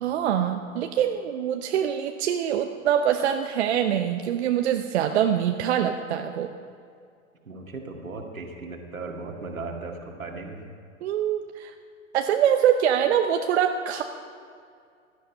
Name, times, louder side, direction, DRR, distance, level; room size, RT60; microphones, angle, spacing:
voice 1, 0.0-6.5 11.0-11.7 12.1-14.0, right 9 dB, 55° right, 6 dB, 0.8 m, -24 dB
voice 2, 7.4-10.6, right 3 dB, 80° right, 2 dB, 2.0 m, -37 dB
16.0 x 12.0 x 5.3 m, 2.3 s
figure-of-eight pair, 105°, 40 cm